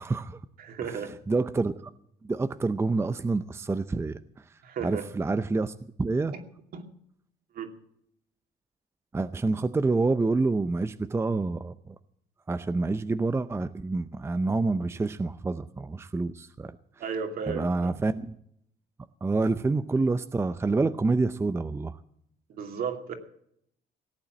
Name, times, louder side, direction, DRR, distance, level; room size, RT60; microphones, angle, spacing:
voice 1, 0.0-0.4 0.8-1.9 2.2-6.3 9.1-12.0 12.5-16.8 17.5-18.3 19.2-22.0, right 3 dB, 15° right, 11 dB, 0.6 m, -28 dB
voice 2, 0.6-1.1 4.6-5.0 6.7-6.8 7.5-7.7 17.0-17.9 22.5-23.1, right 6 dB, 60° right, 4 dB, 2.6 m, -34 dB
18.0 x 8.9 x 7.5 m, 0.72 s
cardioid pair, 110°, 17 cm